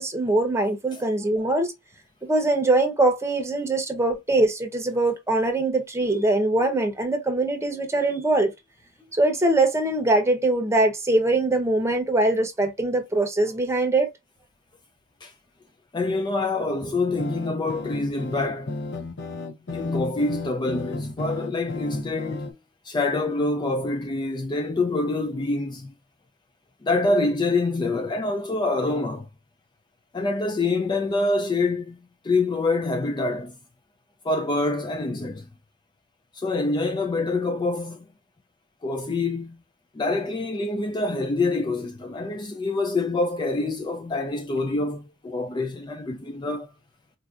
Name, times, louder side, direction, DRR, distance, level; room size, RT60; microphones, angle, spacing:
voice 1, 0.0-1.7 2.2-8.5 9.1-14.1, right 2 dB, 15° right, 0.8 m, -22 dB
voice 2, 15.9-18.7 19.7-22.6 22.8-26.0 26.8-29.3 30.1-32.0 32.2-33.6 34.2-35.5 36.3-38.0 38.8-39.6 39.9-46.7, left 2 dB, 20° left, 0.3 m, -26 dB
sound 1, 17.1-22.5, left 3 dB, 60° left, 0.6 m, -34 dB
4.2 x 2.6 x 2.4 m
head